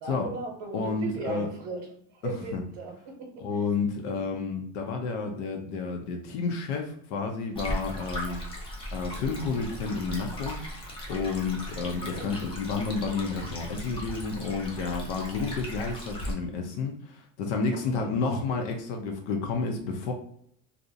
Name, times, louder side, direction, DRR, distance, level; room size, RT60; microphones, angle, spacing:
voice 1, 0.0-1.9 2.1-3.4 11.8-12.3 18.0-18.1, right 4 dB, 80° right, 0 dB, 0.8 m, -37 dB
voice 2, 0.7-1.5 2.2-2.6 3.4-8.4 8.9-10.6 11.1-20.1, left 4 dB, 90° left, 3 dB, 0.6 m, -30 dB
Stream, 7.5-16.3, equal, 15° left, 0.4 m, -37 dB
2.5 x 2.0 x 2.6 m, 0.66 s
cardioid pair, 155°, 32 cm